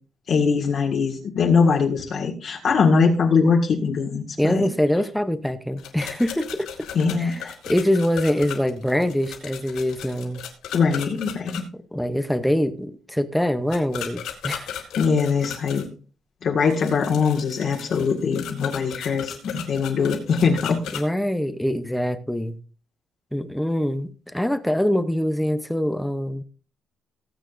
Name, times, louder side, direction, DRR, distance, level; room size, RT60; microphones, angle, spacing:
voice 1, 0.3-4.6 6.9-7.5 10.7-11.6 15.0-15.9 16.4-20.8, left 5 dB, 45° left, 1.8 m, -21 dB
voice 2, 4.4-6.7 7.2-10.4 11.7-14.8 20.9-22.6 23.3-26.4, equal, ahead, 0.7 m, -24 dB
sound 1, 5.8-11.6 13.7-15.9 16.7-21.0, left 9 dB, 90° left, 3.9 m, -36 dB
19.5 x 9.0 x 2.6 m
cardioid pair, 175°, 0 cm